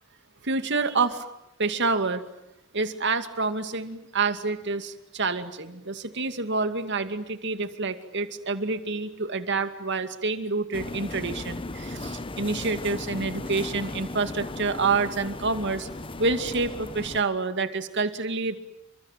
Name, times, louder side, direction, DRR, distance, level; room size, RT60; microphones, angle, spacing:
voice 1, 0.4-1.3 1.6-2.2 2.7-15.9 16.2-18.6, right 4 dB, 60° right, 9 dB, 2.4 m, -28 dB
sound 1, 10.7-17.2, left 2 dB, 25° left, 0.9 m, -36 dB
30.0 x 25.0 x 7.5 m, 0.85 s
head